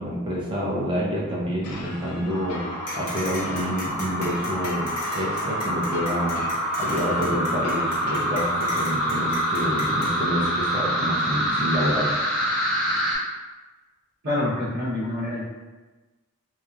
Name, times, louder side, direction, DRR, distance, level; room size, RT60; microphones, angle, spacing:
voice 1, 0.0-2.6 3.0-6.4 6.8-12.1, equal, 20° right, -5 dB, 0.5 m, -28 dB
sound 1, 1.6-8.5, left 2 dB, 80° left, 0.4 m, -38 dB
sound 2, 2.3-13.2, equal, ahead, 1.0 m, -26 dB
sound 3, 2.9-10.1, left 2 dB, 40° left, 0.8 m, -36 dB
voice 2, 14.2-15.5, left 1 dB, 65° right, -11 dB, 0.8 m, -26 dB
2.9 x 2.3 x 2.2 m, 1.2 s
head